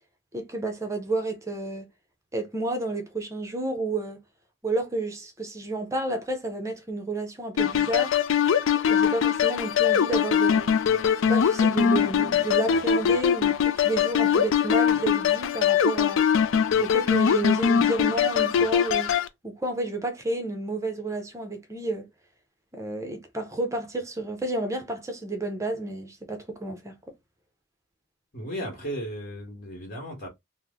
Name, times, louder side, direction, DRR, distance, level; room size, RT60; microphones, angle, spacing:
voice 1, 0.3-1.9 2.3-4.2 4.6-8.1 8.9-10.7 11.2-16.2 16.8-19.1 19.4-22.1 22.7-27.0, right 2 dB, 15° right, 0.6 m, -30 dB
sound 1, 7.6-19.3, left 8 dB, 65° left, 0.4 m, -22 dB
voice 2, 28.3-30.3, equal, 45° left, 1.2 m, -35 dB
3.0 x 2.0 x 3.5 m
head